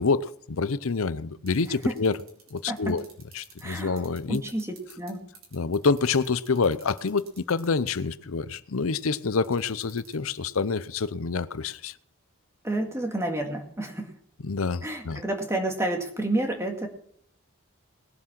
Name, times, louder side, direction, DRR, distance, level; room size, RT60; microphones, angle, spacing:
voice 1, 0.0-2.2 2.5-3.0 3.3-4.4 5.5-11.9 14.4-15.2, left 4 dB, 80° left, 0.7 m, -27 dB
sound 1, 1.5-5.1 5.3-7.9 9.4-10.1, right 12 dB, 80° right, 4.6 m, -50 dB
voice 2, 3.6-4.0 4.3-4.7 5.0-5.2 12.6-14.1 14.8-16.9, right 1 dB, 15° right, 2.0 m, -29 dB
20.0 x 7.7 x 6.0 m
head